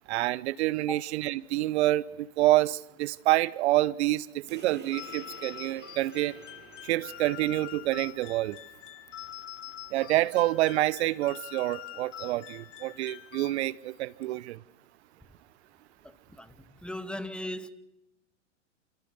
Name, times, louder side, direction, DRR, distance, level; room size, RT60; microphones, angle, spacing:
voice 1, 0.1-6.4 6.8-8.6 9.9-14.6, right 16 dB, 60° right, 0.9 m, -27 dB
sound 1, 4.5-9.5, right 4 dB, 25° right, 7.3 m, -51 dB
sound 2, 4.9-14.0, left 13 dB, 65° left, 3.3 m, -45 dB
voice 2, 16.0-16.6 16.8-17.7, left 1 dB, 5° left, 2.1 m, -38 dB
29.5 x 29.0 x 6.9 m
hypercardioid pair, 115°, 38 cm